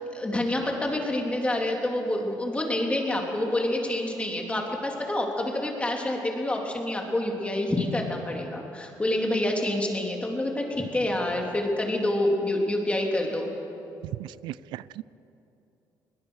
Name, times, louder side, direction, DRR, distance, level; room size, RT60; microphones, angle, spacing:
voice 1, 0.1-13.5, left 1 dB, 15° left, 0 dB, 3.6 m, -27 dB
voice 2, 14.2-15.0, right 15 dB, 85° right, 20 dB, 0.4 m, -38 dB
22.0 x 20.0 x 6.5 m, 2.8 s
cardioid pair, 100°, 8 cm